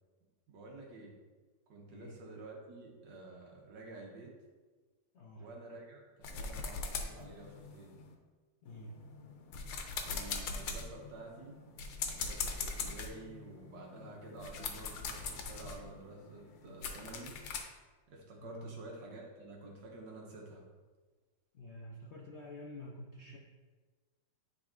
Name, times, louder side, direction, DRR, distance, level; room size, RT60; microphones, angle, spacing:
voice 1, 0.5-1.2 1.7-4.4 5.4-8.0 10.0-11.6 12.0-17.4 18.1-20.7, right 2 dB, 75° right, -1 dB, 1.8 m, -50 dB
voice 2, 1.9-2.2 5.1-5.5 8.6-9.0 18.4-18.8 21.5-23.4, left 1 dB, 65° left, -2 dB, 0.6 m, -48 dB
sound 1, 6.2-8.1 8.7-17.6, left 4 dB, 85° left, 1.4 m, -41 dB
9.8 x 4.0 x 2.5 m, 1.3 s
omnidirectional pair, 2.0 m